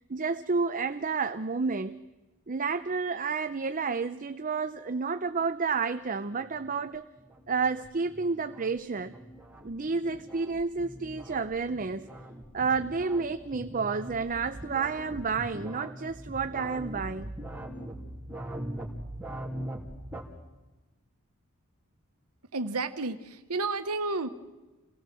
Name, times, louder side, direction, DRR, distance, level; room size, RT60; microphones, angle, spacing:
voice 1, 0.1-2.0 2.5-7.1 7.5-9.1 9.6-12.1 12.5-17.3, right 4 dB, 40° right, 0.7 m, -30 dB
sound 1, 6.3-20.2, right 1 dB, 5° right, 2.9 m, -42 dB
voice 2, 22.5-24.3, right 3 dB, 90° right, 1.4 m, -31 dB
28.0 x 17.0 x 7.7 m
head